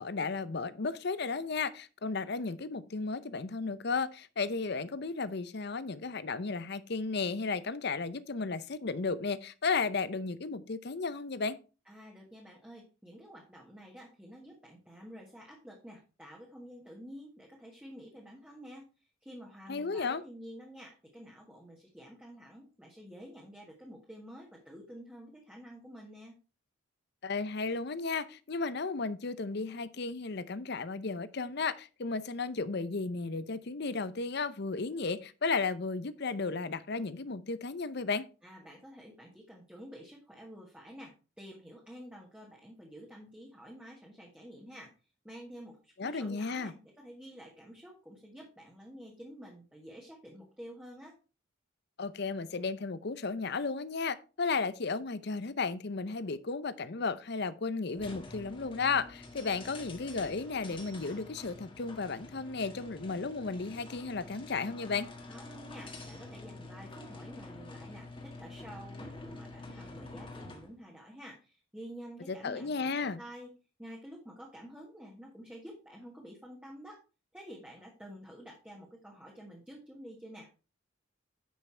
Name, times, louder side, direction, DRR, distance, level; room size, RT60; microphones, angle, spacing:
voice 1, 0.0-11.6 19.7-20.2 27.2-38.3 46.0-46.7 52.0-65.1 72.3-73.2, left 4 dB, 55° left, 0.7 m, -34 dB
voice 2, 11.9-18.8 19.2-26.4 38.4-44.9 45.2-51.1 65.3-73.5 73.8-77.0 77.3-80.5, equal, 5° right, 1.5 m, -49 dB
sound 1, 57.9-70.7, left 2 dB, 25° left, 1.5 m, -47 dB
9.7 x 5.7 x 4.4 m
head